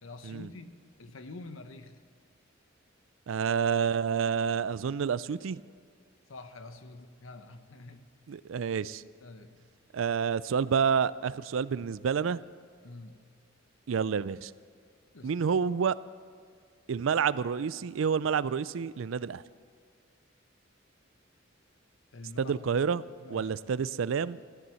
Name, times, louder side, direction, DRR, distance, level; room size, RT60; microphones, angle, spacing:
voice 1, 0.0-2.0 6.3-8.1 9.2-9.7 12.8-13.2 15.1-15.3 22.1-22.7 23.2-23.5, left 2 dB, 80° left, 9 dB, 1.0 m, -47 dB
voice 2, 3.3-5.6 8.3-9.0 9.9-12.4 13.9-14.5 15.2-15.9 16.9-19.4 22.4-23.0 23.3-24.4, right 6 dB, 70° right, 18 dB, 0.4 m, -29 dB
14.5 x 10.5 x 7.0 m, 2.1 s
head